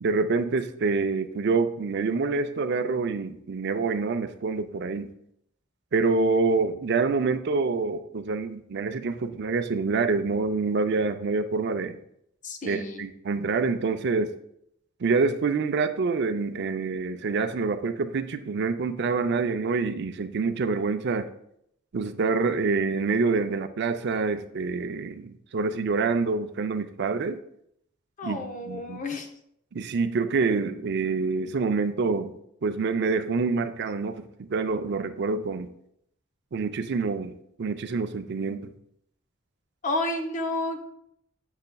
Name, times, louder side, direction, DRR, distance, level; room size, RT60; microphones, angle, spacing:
voice 1, 0.0-5.1 5.9-12.0 12.6-14.3 15.0-21.3 21.9-27.4 28.2-29.0 29.7-32.3 32.6-35.7 36.5-37.3 37.6-38.7, right 4 dB, 60° right, 9 dB, 0.5 m, -26 dB
voice 2, 12.4-13.1 28.2-29.3 39.8-40.8, left 2 dB, 40° left, 5 dB, 0.7 m, -30 dB
7.1 x 6.5 x 2.3 m, 0.72 s
head